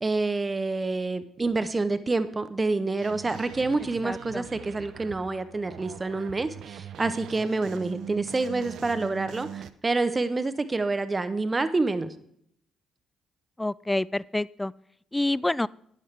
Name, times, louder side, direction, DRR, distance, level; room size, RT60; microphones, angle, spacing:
voice 1, 0.0-12.1, right 3 dB, 30° right, 12 dB, 1.0 m, -27 dB
sound 1, 3.0-9.7, right 10 dB, 65° right, 0.5 m, -42 dB
voice 2, 4.0-4.5 13.6-14.7 15.1-15.7, left 2 dB, 15° left, 22 dB, 0.3 m, -27 dB
12.5 x 10.0 x 3.4 m, 0.70 s
hypercardioid pair, 45°, 0 cm